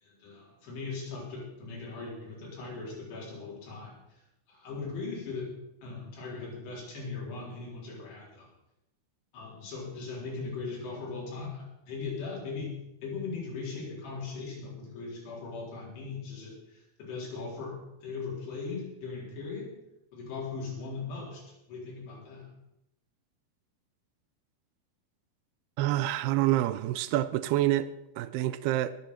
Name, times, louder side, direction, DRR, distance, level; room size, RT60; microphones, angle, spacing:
voice 1, 0.0-4.2 4.5-5.5 5.8-8.5 9.3-12.7 13.0-19.7 20.1-22.5, left 4 dB, 80° left, 6.2 m, -39 dB
voice 2, 25.8-29.0, right 14 dB, 85° right, 2.6 m, -27 dB
20.5 x 7.3 x 5.7 m
omnidirectional pair, 4.7 m